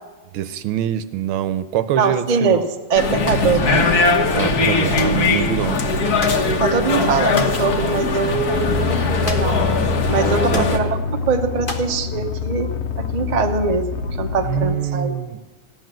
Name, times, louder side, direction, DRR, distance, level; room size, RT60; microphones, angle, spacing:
voice 1, 0.3-2.6 3.6-3.8 4.3-5.8 10.4-10.7 14.4-15.4, right 10 dB, 80° right, 13 dB, 1.6 m, -24 dB
voice 2, 1.9-2.6 2.9-3.7 6.6-9.6 10.1-13.9 14.2-15.1, right 5 dB, 35° right, 4 dB, 0.7 m, -22 dB
sound 1, 3.0-10.8, left 3 dB, 50° left, 1.6 m, -20 dB
sound 2, 5.0-5.2 6.2-6.5 7.3-7.6 9.2-9.7 9.9-10.0 10.5-10.8 11.7-12.0, left 3 dB, 30° left, 1.1 m, -30 dB
sound 3, 8.5-14.8, left 6 dB, 75° left, 0.6 m, -25 dB
15.5 x 10.5 x 7.6 m, 1.2 s
omnidirectional pair, 2.4 m